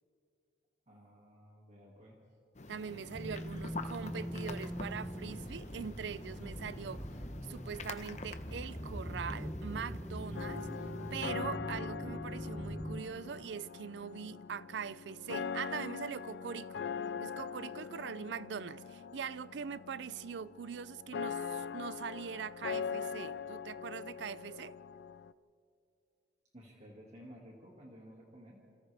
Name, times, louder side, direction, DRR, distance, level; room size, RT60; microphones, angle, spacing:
voice 1, 0.9-2.2 26.5-28.6, equal, 40° right, 2.1 m, -54 dB
sound 1, 2.5-11.3, left 2 dB, 40° left, 0.9 m, -47 dB
voice 2, 2.7-7.1 7.4-10.7 11.1-16.9 17.2-24.7, right 7 dB, 70° right, 0.4 m, -42 dB
sound 2, 3.1-13.0, equal, 5° right, 0.5 m, -42 dB
sound 3, 10.4-25.3, left 6 dB, 70° left, 0.4 m, -42 dB
28.5 x 26.5 x 3.5 m
head